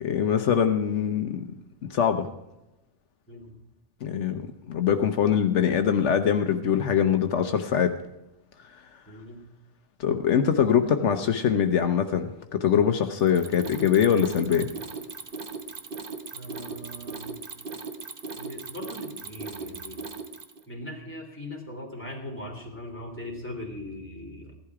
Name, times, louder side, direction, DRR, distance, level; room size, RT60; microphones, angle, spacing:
voice 1, 0.0-1.4 1.9-2.3 4.0-8.0 10.0-14.7, left 8 dB, 75° left, 7 dB, 1.1 m, -23 dB
voice 2, 9.1-9.4 16.3-17.4 18.4-20.0 20.7-24.5, left 1 dB, 10° left, -1 dB, 3.2 m, -40 dB
Mechanisms, 13.2-20.6, right 4 dB, 50° right, 1.2 m, -38 dB
15.5 x 12.0 x 4.8 m, 0.92 s
omnidirectional pair, 1.2 m